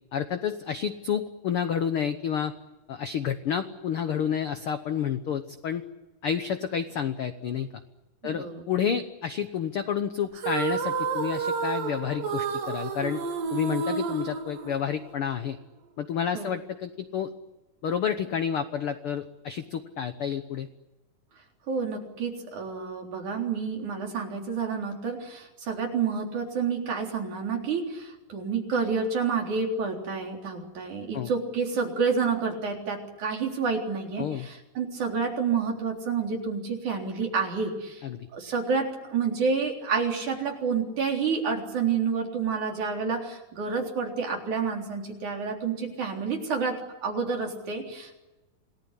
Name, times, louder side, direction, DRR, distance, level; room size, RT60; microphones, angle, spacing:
voice 1, 0.1-2.5 2.9-5.8 6.2-7.8 8.2-13.2 13.5-15.6 16.0-17.3 17.8-20.7 31.1-31.3 34.2-34.5 38.0-38.3, left 8 dB, 75° left, 9 dB, 1.2 m, -30 dB
voice 2, 8.2-8.6 16.3-16.5 21.7-38.0 38.3-48.2, right 5 dB, 60° right, 1 dB, 5.1 m, -29 dB
sound 1, 10.3-15.2, right 5 dB, 75° right, 3.9 m, -30 dB
28.0 x 19.0 x 10.0 m, 1.1 s
omnidirectional pair, 4.0 m